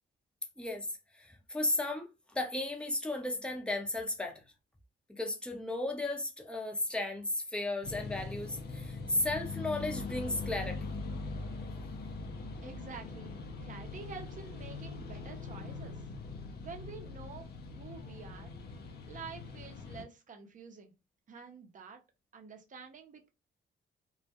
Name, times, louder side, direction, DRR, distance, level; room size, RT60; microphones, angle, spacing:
voice 1, 0.6-0.9 1.1-4.4 5.1-10.8, left 2 dB, 5° left, 0.6 m, -34 dB
sound 1, 7.8-20.0, left 3 dB, 55° left, 0.5 m, -42 dB
voice 2, 12.6-16.0 16.6-17.5 17.8-18.5 19.1-20.9 21.3-22.0 22.3-23.3, right 5 dB, 40° right, 0.7 m, -48 dB
2.3 x 2.1 x 2.7 m
cardioid pair, 90°, 20 cm